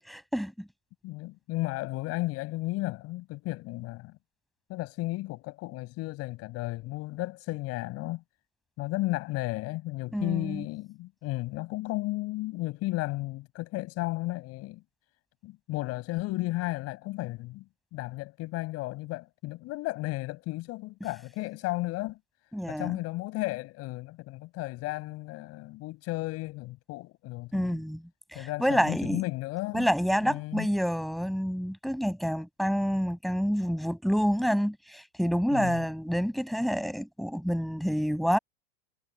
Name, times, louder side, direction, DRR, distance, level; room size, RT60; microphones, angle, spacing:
voice 1, 0.1-0.5 10.1-10.6 22.5-23.0 27.5-28.0 28.3-29.2 29.7-38.4, equal, ahead, 6.6 m, -28 dB
voice 2, 1.0-4.2 4.7-8.2 8.8-14.8 15.4-17.6 17.9-22.2 22.7-27.8 28.3-29.9 30.2-30.7 35.5-35.8, left 20 dB, 40° left, 7.4 m, -34 dB
supercardioid pair, 160°, 37 cm